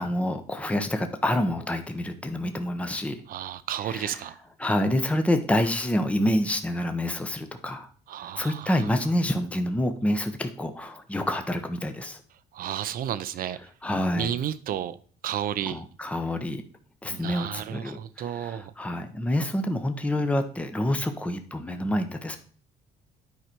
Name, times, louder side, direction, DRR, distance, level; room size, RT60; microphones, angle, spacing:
voice 1, 0.0-3.2 3.8-4.2 4.6-7.9 8.2-12.2 13.8-14.3 15.6-16.6 17.0-22.4, left 1 dB, 10° left, 0.9 m, -27 dB
voice 2, 3.3-4.4 8.1-8.7 12.5-13.6 14.1-15.0 15.2-15.8 17.1-18.7, right 10 dB, 60° right, 0.6 m, -32 dB
9.5 x 4.9 x 4.5 m
cardioid pair, 110°, 17 cm